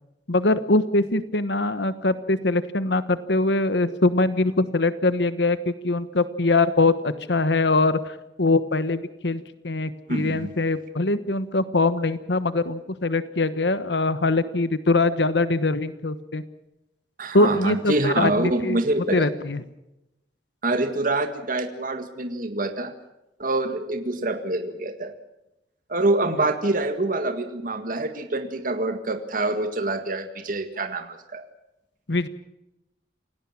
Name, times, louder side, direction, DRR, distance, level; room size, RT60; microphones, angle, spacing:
voice 1, 0.3-16.4 17.3-18.8 19.1-19.6 32.1-32.3, left 2 dB, 75° left, 13 dB, 1.2 m, -23 dB
voice 2, 10.1-10.5 17.2-19.3 20.6-22.9 23.4-25.1 25.9-31.4, right 2 dB, 50° right, 7 dB, 1.9 m, -26 dB
28.0 x 18.0 x 7.3 m, 0.91 s
head